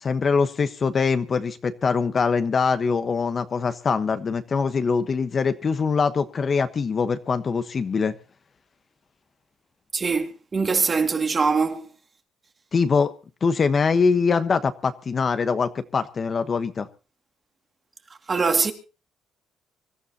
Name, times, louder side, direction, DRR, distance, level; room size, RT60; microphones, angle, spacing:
voice 1, 0.0-8.1 12.7-13.1 13.4-16.9, left 5 dB, 35° left, 1.1 m, -23 dB
voice 2, 9.9-11.9 18.3-18.7, right 4 dB, 30° right, 2.2 m, -22 dB
25.0 x 13.5 x 2.9 m
cardioid pair, 110°, 0 cm